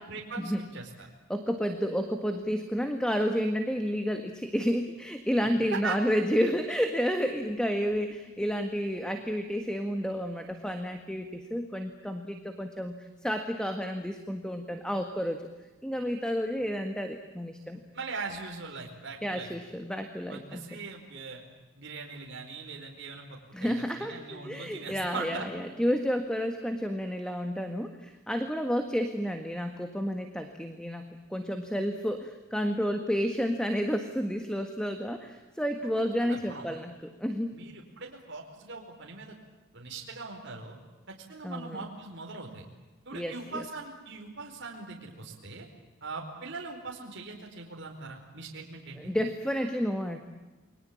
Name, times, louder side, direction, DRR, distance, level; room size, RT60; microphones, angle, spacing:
voice 1, 0.1-1.1 5.7-6.0 17.9-19.5 20.3-21.4 21.8-25.5 36.2-36.6 37.5-39.4 39.7-40.8 41.1-42.6 43.0-45.7 46.0-49.1, right 4 dB, 55° right, 0 dB, 4.7 m, -40 dB
voice 2, 1.3-15.4 15.8-17.8 19.2-20.8 23.5-37.5 41.4-41.8 43.1-43.6 49.0-50.2, equal, 5° left, 6 dB, 1.6 m, -31 dB
29.0 x 22.5 x 8.8 m, 1.2 s
head